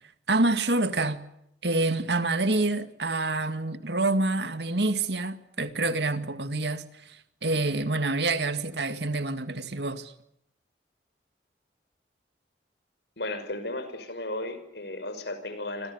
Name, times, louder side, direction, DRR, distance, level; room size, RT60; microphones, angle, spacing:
voice 1, 0.3-1.2 1.6-10.1, right 2 dB, 70° right, 2.1 m, -27 dB
voice 2, 13.2-15.9, left 2 dB, 65° left, 5.6 m, -34 dB
28.0 x 26.0 x 7.1 m
head